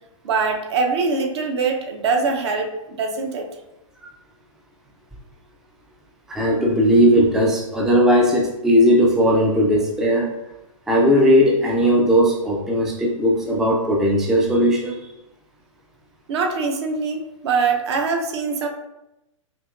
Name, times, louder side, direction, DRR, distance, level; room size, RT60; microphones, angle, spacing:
voice 1, 0.2-3.5 16.3-18.7, right 4 dB, 50° right, 3 dB, 0.7 m, -23 dB
voice 2, 6.3-10.3 10.9-15.1, equal, 5° right, -2 dB, 0.4 m, -17 dB
4.9 x 2.9 x 2.4 m, 0.91 s
figure-of-eight pair, 115°, 17 cm